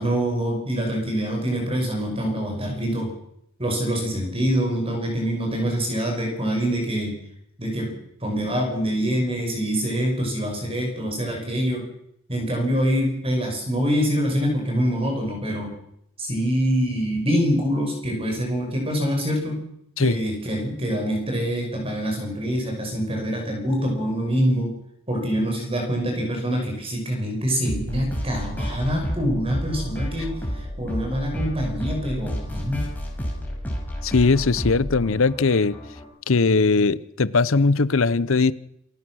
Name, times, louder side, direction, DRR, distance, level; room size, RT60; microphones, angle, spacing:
voice 1, 0.0-3.1 3.6-7.2 7.6-11.9 12.3-15.8 16.2-19.6 20.0-24.7 25.1-32.9, equal, 25° right, 1 dB, 5.9 m, -25 dB
sound 1, 27.6-36.0, equal, 10° left, 5.5 m, -31 dB
voice 2, 34.0-35.7 36.3-38.5, left 4 dB, 65° left, 19 dB, 0.7 m, -19 dB
27.5 x 16.0 x 6.3 m, 0.77 s
head